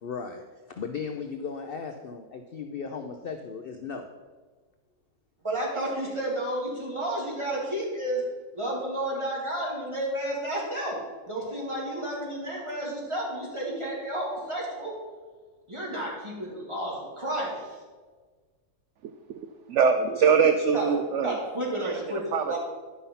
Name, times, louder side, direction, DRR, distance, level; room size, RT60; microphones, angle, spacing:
voice 1, 0.0-4.1, left 5 dB, 65° left, 5 dB, 0.5 m, -36 dB
voice 2, 5.4-8.2 8.5-11.0 11.3-14.9 15.7-17.8 20.7-20.9 21.2-22.6, right 1 dB, 15° right, -4 dB, 2.5 m, -31 dB
voice 3, 19.7-21.4 21.8-22.0 22.3-22.6, right 6 dB, 70° right, 7 dB, 0.7 m, -22 dB
11.0 x 5.7 x 5.5 m, 1.4 s
omnidirectional pair, 1.7 m